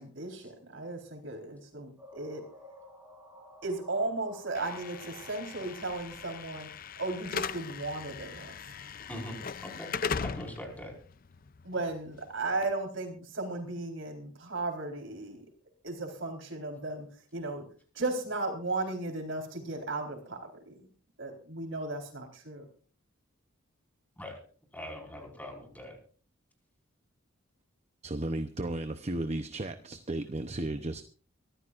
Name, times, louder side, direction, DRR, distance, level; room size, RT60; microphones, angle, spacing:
voice 1, 0.0-2.4 3.6-6.7 7.0-8.5 11.6-15.4 15.8-17.1 17.3-17.7 17.9-20.9 21.2-22.7, right 2 dB, 65° right, 4 dB, 4.1 m, -35 dB
sound 1, 2.0-7.7, equal, 10° right, 6.8 m, -54 dB
Slam / Alarm, 4.5-12.6, left 6 dB, 45° left, 0.5 m, -39 dB
voice 2, 9.1-9.9 10.2-10.9 24.2-24.4 24.7-26.0, left 1 dB, 10° left, 1 dB, 4.9 m, -42 dB
voice 3, 28.0-31.0, right 1 dB, 35° right, 8 dB, 0.8 m, -34 dB
24.0 x 14.5 x 2.5 m, 0.41 s
head